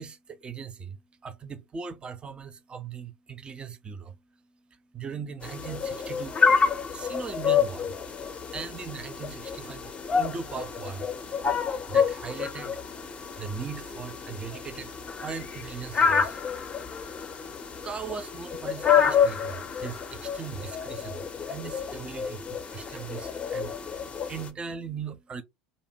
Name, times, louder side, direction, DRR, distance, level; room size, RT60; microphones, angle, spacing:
voice 1, 0.0-4.2 4.7-6.4 6.7-8.0 8.5-11.1 11.9-12.8 13.4-16.5 17.8-25.4, right 6 dB, 25° right, 0.5 m, -39 dB
sound 1, 5.4-24.5, left 6 dB, 30° left, 0.5 m, -28 dB
2.7 x 2.1 x 2.7 m
hypercardioid pair, 75°, 4 cm